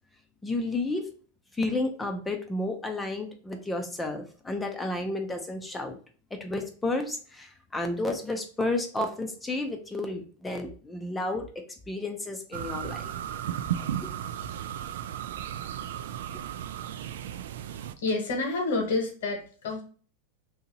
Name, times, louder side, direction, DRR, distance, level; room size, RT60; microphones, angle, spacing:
voice 1, 0.4-1.1 1.6-6.0 6.4-13.1 13.8-14.1, left 2 dB, 10° left, 5 dB, 0.5 m, -32 dB
sound 1, 12.5-17.9, right 10 dB, 80° right, 0.3 m, -35 dB
voice 2, 18.0-19.8, left 3 dB, 80° left, 2 dB, 1.4 m, -28 dB
2.8 x 2.8 x 3.8 m, 0.42 s
supercardioid pair, 130°, 0 cm